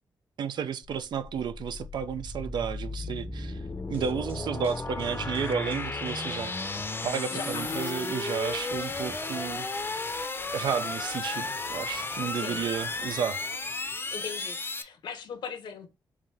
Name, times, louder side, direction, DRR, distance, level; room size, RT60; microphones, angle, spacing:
voice 1, 0.4-3.6 3.9-6.5 7.0-9.7 10.5-13.4, right 7 dB, 75° right, 0.5 m, -32 dB
sound 1, 0.8-14.8, left 3 dB, 30° left, 0.6 m, -34 dB
sound 2, 3.9-9.4, right 2 dB, 30° right, 1.0 m, -49 dB
voice 2, 7.3-7.9 12.3-12.6 14.1-15.9, left 6 dB, 85° left, 1.0 m, -39 dB
4.8 x 2.8 x 3.3 m
cardioid pair, 80°, 8 cm